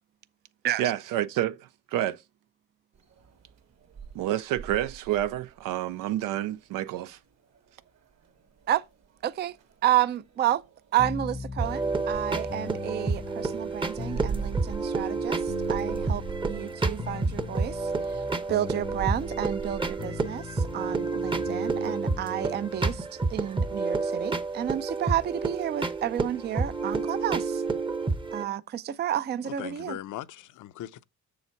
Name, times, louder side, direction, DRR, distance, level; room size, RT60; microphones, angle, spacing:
voice 1, 0.8-2.2 4.1-7.2, right 13 dB, 85° right, 0.5 m, -29 dB
sound 1, 2.9-20.0, right 6 dB, 55° right, 1.7 m, -42 dB
voice 2, 9.2-9.6 9.8-10.6 10.9-18.2 18.5-27.6 28.3-30.0, right 12 dB, 35° right, 0.4 m, -30 dB
sound 2, 11.0-22.9, left 6 dB, 20° left, 0.5 m, -41 dB
sound 3, 11.6-28.4, right 3 dB, 15° right, 0.8 m, -30 dB
voice 3, 29.4-31.0, left 13 dB, 70° left, 0.6 m, -39 dB
7.0 x 6.8 x 4.5 m
cardioid pair, 120°, 32 cm